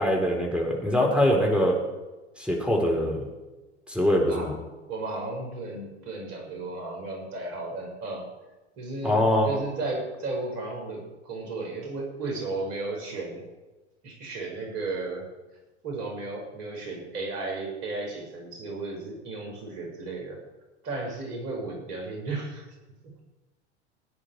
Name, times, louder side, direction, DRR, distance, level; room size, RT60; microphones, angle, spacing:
voice 1, 0.0-1.8 2.4-3.3 3.9-4.5 9.0-9.5, left 1 dB, 5° right, 0 dB, 4.2 m, -23 dB
voice 2, 4.3-8.3 8.8-13.5 14.0-15.3 15.8-20.4 20.8-22.7, right 3 dB, 50° right, 1 dB, 6.0 m, -34 dB
18.0 x 9.9 x 4.8 m, 1.1 s
hypercardioid pair, 85°, 34 cm